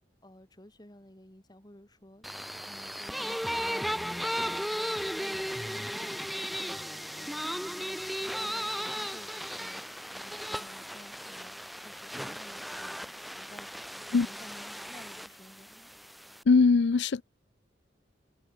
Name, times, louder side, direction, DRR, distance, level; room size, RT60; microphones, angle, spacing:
voice 1, 0.2-2.3 2.7-9.8 10.1-15.9, left 1 dB, 20° left, 2.0 m, -54 dB
sound 1, 2.2-16.4, equal, ahead, 0.8 m, -36 dB
voice 2, 16.5-17.2, left 4 dB, 60° left, 0.5 m, -21 dB
head